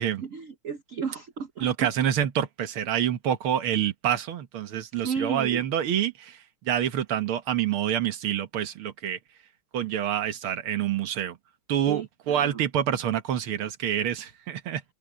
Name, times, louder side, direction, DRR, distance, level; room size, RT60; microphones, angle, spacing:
voice 1, 0.2-1.9 5.0-5.6 11.9-12.6, right 6 dB, 50° right, 1.0 m, -33 dB
voice 2, 1.6-9.2 9.7-11.4 11.7-14.8, right 10 dB, 80° right, 2.1 m, -27 dB
omnidirectional pair, 2.3 m